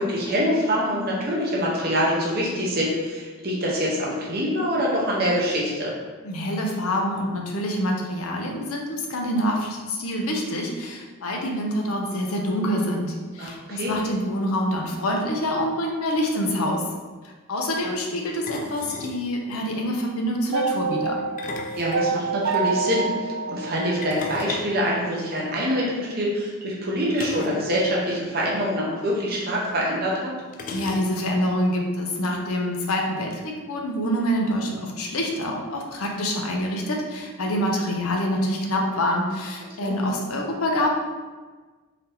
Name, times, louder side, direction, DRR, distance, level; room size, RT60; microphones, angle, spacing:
voice 1, 0.0-5.9 13.4-14.0 21.8-30.3 39.8-40.0, equal, 45° right, -4 dB, 0.9 m, -25 dB
voice 2, 6.2-16.8 17.2-21.2 30.7-41.0, equal, 85° left, 0 dB, 0.7 m, -26 dB
sound 1, 16.1-16.2 16.4-16.6 18.5-19.2 21.2-22.6 24.0-25.7 27.1-27.7 27.9-28.0 28.3-28.5 29.5-29.6 30.5-31.4, left 3 dB, 40° left, 0.3 m, -36 dB
sound 2, 20.5-24.7, right 4 dB, 65° right, 0.3 m, -27 dB
3.9 x 2.8 x 3.4 m, 1.3 s
head